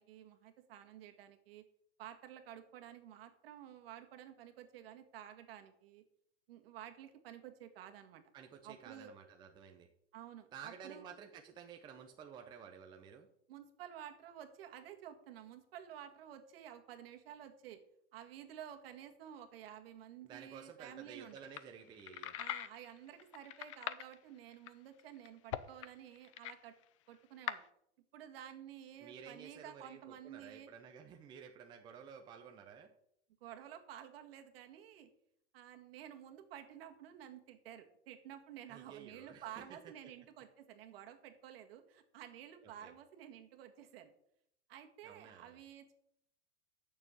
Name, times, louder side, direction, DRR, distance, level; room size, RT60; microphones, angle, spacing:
voice 1, 0.0-1.7 2.0-6.0 6.5-8.2 8.6-9.1 10.1-11.1 13.5-17.8 18.1-21.4 22.4-26.7 27.1-27.6 28.1-30.7 33.4-35.1 35.5-44.1 44.7-45.9, right 10 dB, 55° right, 5 dB, 1.8 m, -52 dB
voice 2, 8.3-9.9 10.5-13.3 20.2-22.3 29.0-32.9 38.7-40.1 42.8-42.9 45.0-45.6, right 7 dB, 15° right, 3 dB, 0.6 m, -53 dB
sound 1, 21.3-21.6 21.9-24.1 24.5-24.7 25.0-25.9 26.2-26.5 26.8-26.9 27.5-27.6, left 13 dB, 30° left, 0.4 m, -41 dB
8.6 x 6.9 x 8.3 m, 0.72 s
supercardioid pair, 165°, 35 cm